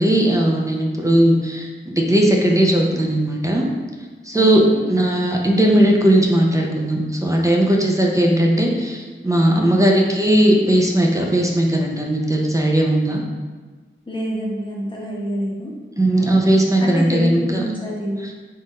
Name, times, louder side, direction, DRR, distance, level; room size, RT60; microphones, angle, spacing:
voice 1, 0.0-1.7 2.0-3.7 4.2-4.6 4.9-13.2 16.0-17.6, right 1 dB, 15° right, 0 dB, 0.5 m, -17 dB
voice 2, 4.3-4.8 9.5-9.8 14.1-15.7 16.8-18.3, equal, 25° left, -4 dB, 1.0 m, -27 dB
3.7 x 2.5 x 4.1 m, 1.3 s
wide cardioid pair, 90°, 21 cm